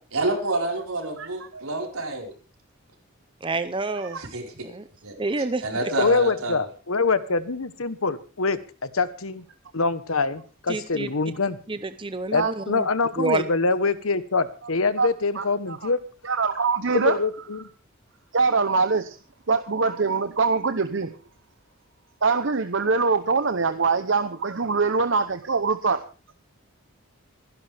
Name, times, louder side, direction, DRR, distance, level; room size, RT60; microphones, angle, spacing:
voice 1, 0.1-2.3 4.2-4.7 5.0-5.1 5.6-6.7, right 2 dB, 85° right, 1 dB, 4.7 m, -28 dB
voice 2, 3.4-4.2 4.6-4.8 5.2-5.9 10.7-11.1 11.7-12.9 13.2-13.4, right 3 dB, 25° right, 11 dB, 0.7 m, -28 dB
voice 3, 6.0-9.4 9.7-11.6 12.3-16.0 16.9-17.7, left 4 dB, 85° left, 14 dB, 1.2 m, -24 dB
voice 4, 16.2-17.2 18.3-19.2 19.5-21.1 22.2-26.0, right 4 dB, 60° right, 9 dB, 0.8 m, -23 dB
26.0 x 11.0 x 3.5 m, 0.35 s
head